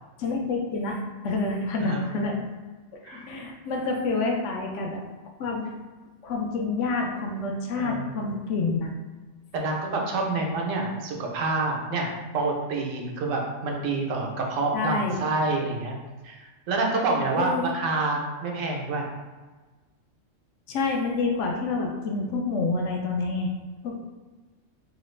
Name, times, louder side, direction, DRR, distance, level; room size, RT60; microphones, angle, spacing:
voice 1, 0.2-2.4 3.0-5.0 5.4-5.7 6.2-8.9 14.7-15.2 17.4-17.7 20.7-23.5 23.8-24.0, left 3 dB, 70° left, 1 dB, 0.9 m, -28 dB
voice 2, 7.8-8.1 9.5-16.0 16.2-19.1, right 3 dB, 80° right, 0 dB, 1.0 m, -27 dB
2.9 x 2.4 x 3.1 m, 1.3 s
omnidirectional pair, 1.3 m